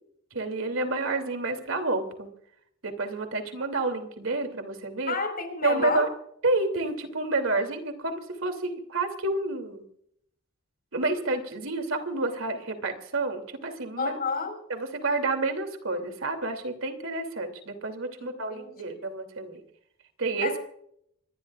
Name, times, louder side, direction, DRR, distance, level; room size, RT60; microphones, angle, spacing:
voice 1, 0.3-2.3 2.8-5.1 5.6-6.1 6.4-9.8 10.9-14.2 14.7-19.6 20.2-20.5, right 2 dB, 80° right, 6 dB, 2.9 m, -29 dB
voice 2, 5.1-6.1 14.0-14.5 18.2-19.0 20.4-20.6, left 4 dB, 45° left, 5 dB, 4.8 m, -31 dB
25.0 x 20.5 x 2.5 m, 0.70 s
head